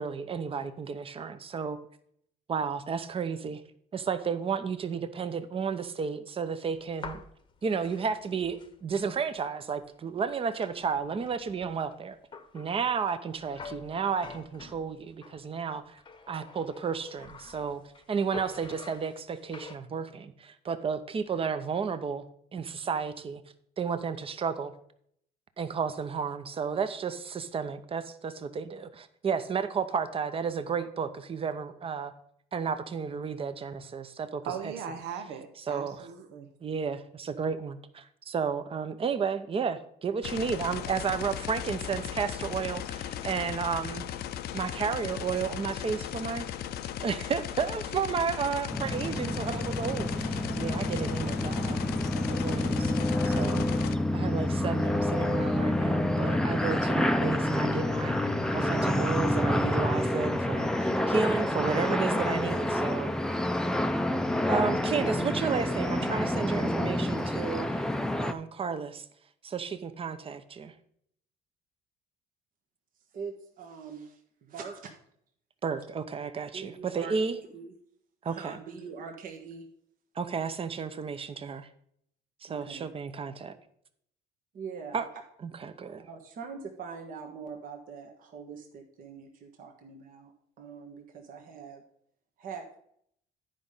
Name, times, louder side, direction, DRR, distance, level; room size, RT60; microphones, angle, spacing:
voice 1, 0.0-1.8 2.5-3.6 3.9-7.2 7.6-12.2 12.5-16.0 16.3-17.8 18.1-22.2 22.5-23.4 23.8-24.7 25.6-32.1 32.5-34.7 35.6-36.1 36.6-44.0 44.5-46.5 47.0-52.9 53.2-53.7 54.1-58.2 58.5-63.1 64.5-67.9 68.2-69.1 69.4-70.7 75.6-77.4 78.2-78.6 80.1-81.7 82.4-83.5 84.9-85.1 85.4-86.0, right 6 dB, 35° right, 11 dB, 0.8 m, -32 dB
sound 1, 6.8-9.4 9.8-9.9 10.2-15.4 16.0-18.0 18.3-19.8, left 5 dB, 30° left, 0.9 m, -47 dB
voice 2, 34.4-36.5, right 7 dB, 85° right, 6 dB, 1.1 m, -38 dB
sound 2, 40.2-54.0, left 10 dB, 70° left, 0.6 m, -37 dB
sound 3, 48.7-68.3, left 1 dB, 5° left, 0.6 m, -28 dB
voice 3, 73.1-74.9 76.5-77.1 77.5-77.7 78.2-79.7 82.5-82.9 84.5-85.0 86.0-90.3 90.6-91.8 92.4-92.8, right 5 dB, 55° right, 2 dB, 1.4 m, -43 dB
10.5 x 5.1 x 5.6 m, 0.68 s
cardioid pair, 110°, 17 cm